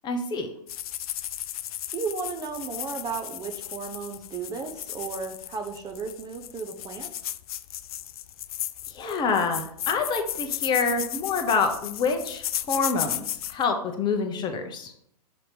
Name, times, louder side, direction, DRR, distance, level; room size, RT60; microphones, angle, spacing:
voice 1, 0.0-0.5 8.9-14.9, left 4 dB, 20° left, 5 dB, 0.7 m, -27 dB
sound 1, 0.7-13.6, left 12 dB, 65° left, 0.4 m, -35 dB
voice 2, 1.9-7.1, right 5 dB, 20° right, 4 dB, 0.6 m, -34 dB
6.9 x 2.9 x 5.0 m, 0.69 s
hypercardioid pair, 120°, 20 cm